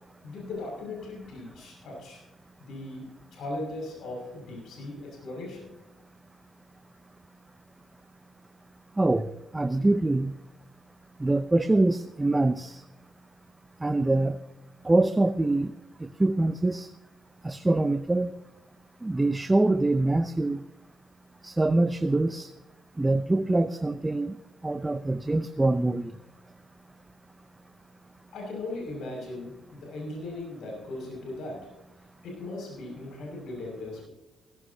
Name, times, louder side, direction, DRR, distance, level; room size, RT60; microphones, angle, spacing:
voice 1, 0.2-2.2 2.6-5.7 28.3-31.8 32.2-34.1, left 2 dB, 75° left, -1 dB, 6.1 m, -38 dB
voice 2, 9.0-9.3 9.5-10.3 11.2-12.8 13.8-14.4 14.8-15.7 16.0-16.9 17.4-18.3 19.0-20.6 21.4-22.5 23.0-24.4 24.6-26.1, right 2 dB, 15° right, 10 dB, 0.7 m, -24 dB
17.0 x 16.0 x 2.8 m, 0.94 s
cardioid pair, 90°, 0 cm